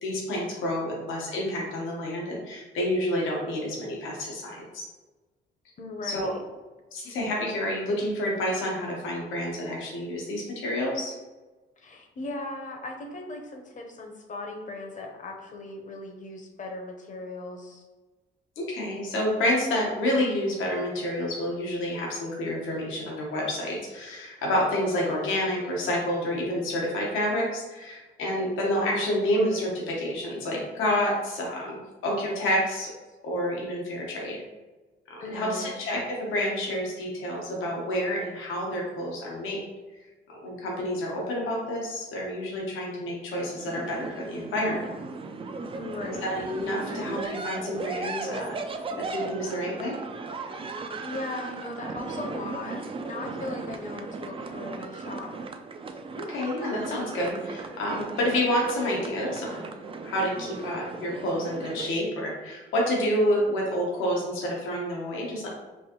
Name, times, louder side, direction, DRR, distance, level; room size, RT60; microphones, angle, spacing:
voice 1, 0.0-4.9 6.0-6.3 6.9-11.1 18.6-31.8 32.0-32.9 33.2-34.4 35.1-39.6 40.3-44.9 46.1-48.6 49.0-49.9 56.3-59.7 60.0-65.5, left 1 dB, 90° left, -3 dB, 1.0 m, -29 dB
voice 2, 5.8-6.4 11.8-17.8 35.2-35.7 45.8-46.3 51.0-55.3, left 2 dB, 40° left, 2 dB, 0.8 m, -38 dB
sound 1, 43.4-61.9, right 3 dB, 25° right, 0.3 m, -37 dB
4.5 x 2.6 x 2.9 m, 1.2 s
cardioid pair, 90°, 20 cm